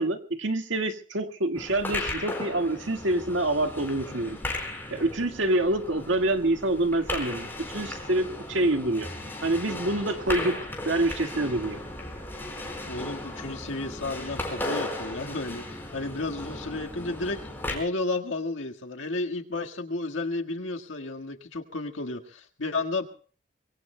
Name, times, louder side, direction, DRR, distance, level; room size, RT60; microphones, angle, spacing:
voice 1, 0.0-4.4 4.9-9.1 9.4-11.8, right 2 dB, 85° right, 1.8 m, -26 dB
sound 1, 1.5-17.8, left 1 dB, 10° left, 4.5 m, -36 dB
voice 2, 12.9-23.1, left 2 dB, 90° left, 1.7 m, -32 dB
24.5 x 23.0 x 2.2 m
head